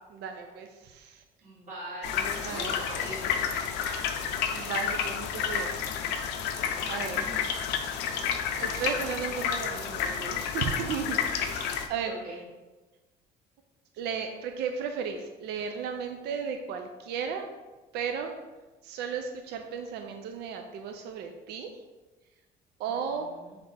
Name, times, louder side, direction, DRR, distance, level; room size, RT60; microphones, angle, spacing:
voice 1, 0.1-1.2 2.4-2.8 4.5-5.7 6.9-7.2 8.6-12.2 14.0-17.5 17.9-18.3 18.8-21.7 22.8-23.3, right 6 dB, 80° right, 5 dB, 0.4 m, -35 dB
voice 2, 1.4-3.4 6.7-7.4 7.9-8.4 12.0-12.4 22.9-23.6, right 1 dB, 45° right, -6 dB, 1.1 m, -42 dB
sound 1, 2.0-11.9, left 7 dB, 90° left, 0.5 m, -30 dB
3.8 x 3.3 x 4.0 m, 1.2 s
cardioid pair, 110°, 17 cm